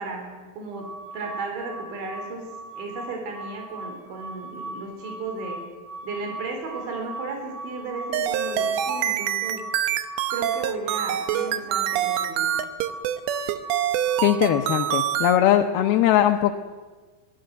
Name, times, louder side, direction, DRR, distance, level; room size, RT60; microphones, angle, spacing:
voice 1, 0.0-2.5 2.8-5.7 6.0-9.7 10.3-12.5, right 3 dB, 85° right, 3 dB, 5.6 m, -34 dB
sound 1, 0.7-14.8, right 1 dB, 55° right, 3.3 m, -39 dB
sound 2, 8.1-15.4, right 11 dB, 70° right, 2.7 m, -25 dB
voice 2, 14.2-16.6, left 11 dB, 75° left, 4 dB, 2.4 m, -20 dB
23.5 x 17.5 x 7.9 m, 1.4 s
omnidirectional pair, 5.1 m